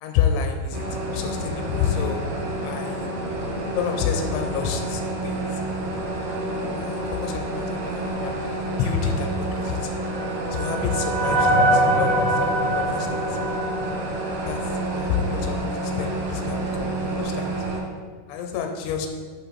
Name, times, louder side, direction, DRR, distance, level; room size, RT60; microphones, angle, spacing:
voice 1, 0.0-2.3 2.6-3.1 3.8-5.6 6.7-9.9 10.5-13.4 14.5-17.6 18.3-19.1, left 7 dB, 85° left, 4 dB, 3.0 m, -29 dB
sound 1, 0.7-17.8, right 1 dB, 75° right, 2.9 m, -29 dB
sound 2, 9.6-15.0, right 1 dB, 50° right, 1.7 m, -24 dB
7.7 x 5.6 x 4.3 m, 1.5 s
omnidirectional pair, 5.3 m